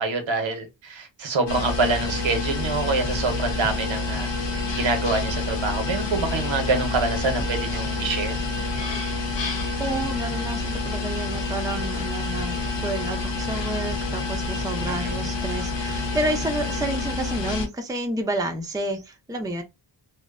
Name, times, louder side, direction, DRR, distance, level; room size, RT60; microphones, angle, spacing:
voice 1, 0.0-8.4 14.9-15.3, right 3 dB, 70° right, 0.8 m, -26 dB
sound 1, 1.5-17.7, left 3 dB, 65° left, 0.7 m, -28 dB
voice 2, 9.8-19.6, right 1 dB, 10° right, 0.4 m, -30 dB
2.5 x 2.0 x 2.4 m
wide cardioid pair, 80°, 46 cm